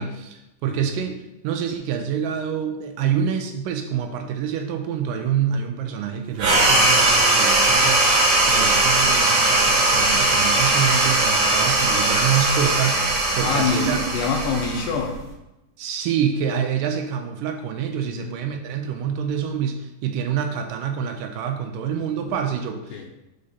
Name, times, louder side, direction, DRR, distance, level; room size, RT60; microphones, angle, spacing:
voice 1, 0.0-14.0 15.8-23.1, right 8 dB, 80° right, 5 dB, 2.1 m, -26 dB
sound 1, 6.4-15.3, right 2 dB, 60° right, 2.3 m, -19 dB
voice 2, 13.4-15.2 18.1-18.4 22.9-23.1, left 5 dB, 75° left, 2 dB, 2.0 m, -26 dB
5.1 x 4.7 x 5.5 m, 0.93 s
omnidirectional pair, 4.1 m